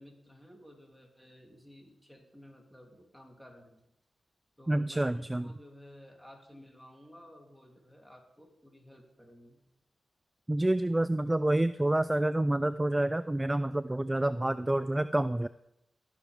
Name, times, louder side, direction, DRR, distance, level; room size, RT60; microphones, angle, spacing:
voice 1, 0.0-3.8 4.6-9.6, equal, 5° left, 1 dB, 3.0 m, -54 dB
voice 2, 4.7-5.4 10.5-15.5, right 1 dB, 20° right, 15 dB, 0.3 m, -28 dB
18.5 x 7.0 x 3.5 m, 0.84 s
supercardioid pair, 45°, 0 cm